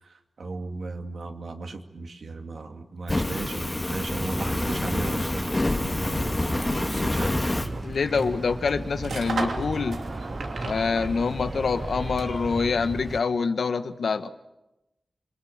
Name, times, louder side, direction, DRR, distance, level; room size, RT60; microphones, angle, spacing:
voice 1, 0.0-5.5 5.8-7.8, right 3 dB, 70° right, 5 dB, 2.5 m, -36 dB
Fire, 3.1-7.7, left 1 dB, 20° left, 1.9 m, -27 dB
sound 1, 4.1-13.2, right 2 dB, 25° right, 1.0 m, -36 dB
sound 2, 5.7-12.5, right 3 dB, 85° right, 2.9 m, -38 dB
voice 2, 7.8-10.0 10.6-14.3, left 5 dB, 75° left, 10 dB, 1.3 m, -26 dB
27.5 x 23.0 x 7.3 m, 0.97 s
wide cardioid pair, 115°, 0 cm